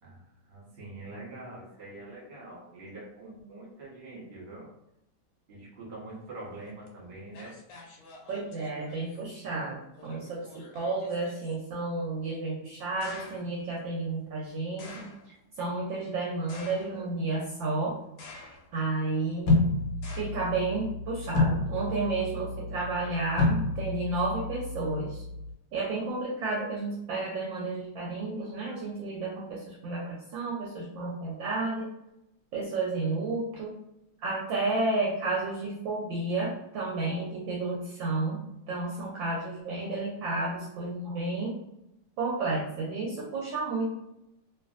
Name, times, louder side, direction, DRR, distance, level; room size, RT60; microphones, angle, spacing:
voice 1, 0.0-4.7 5.5-7.6, right 2 dB, 35° right, -4 dB, 1.1 m, -44 dB
sound 1, 6.9-7.0 7.3-9.2 10.0-11.5 13.0-13.6 14.8-15.3 16.5-17.2 18.2-18.8 20.0-20.2, left 3 dB, 75° left, 1.5 m, -48 dB
voice 2, 8.3-10.5 10.7-15.1 15.6-18.0 18.7-19.5 20.2-25.2 25.7-31.9 32.5-33.7 34.2-41.5 42.2-43.9, right 3 dB, 70° right, -4 dB, 1.2 m, -31 dB
sound 2, 19.5-25.5, left 2 dB, 90° left, 1.6 m, -29 dB
3.2 x 2.9 x 2.4 m, 0.83 s
omnidirectional pair, 2.4 m